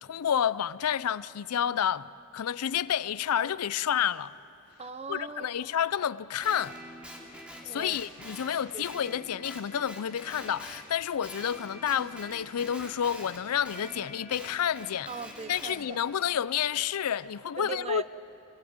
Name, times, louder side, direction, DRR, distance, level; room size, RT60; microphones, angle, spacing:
voice 1, 0.1-4.3 5.1-6.7 7.7-15.1 15.5-18.0, left 9 dB, 85° left, 0.5 m, -30 dB
voice 2, 4.8-5.7 7.6-8.0 8.7-8.8 15.1-16.0 17.6-18.0, right 5 dB, 30° right, 0.7 m, -39 dB
Guitar, 6.4-10.9 11.2-15.8, equal, 5° right, 2.9 m, -45 dB
26.5 x 20.0 x 8.8 m
head